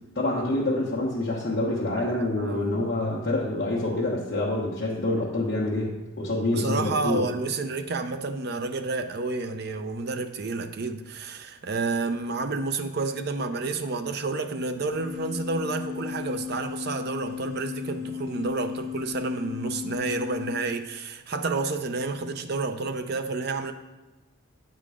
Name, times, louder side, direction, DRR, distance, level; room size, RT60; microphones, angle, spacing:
voice 1, 0.1-5.9 6.2-7.2, left 2 dB, 50° left, 1.1 m, -26 dB
voice 2, 2.0-2.8 6.5-23.7, right 3 dB, 50° right, 0.5 m, -30 dB
sound 1, 14.7-20.6, left 7 dB, 85° left, 0.6 m, -35 dB
8.6 x 3.8 x 4.9 m
head